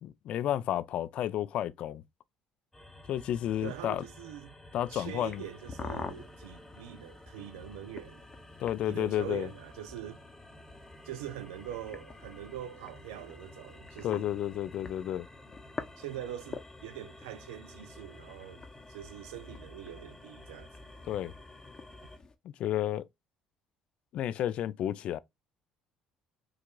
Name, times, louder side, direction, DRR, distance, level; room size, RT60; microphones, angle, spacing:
voice 1, 0.0-2.0 3.1-4.0 4.7-5.4 8.6-9.5 14.0-15.3 21.1-21.3 22.6-23.1 24.1-25.2, left 12 dB, 60° left, 0.3 m, -31 dB
sound 1, 2.7-22.2, left 1 dB, 10° left, 1.0 m, -52 dB
voice 2, 3.6-4.5 4.9-8.3 8.9-10.2 11.1-14.3 16.0-20.7, right 11 dB, 85° right, 0.4 m, -43 dB
sound 2, 5.2-22.4, left 4 dB, 35° left, 0.7 m, -48 dB
4.7 x 2.4 x 2.3 m
hypercardioid pair, 70°, 2 cm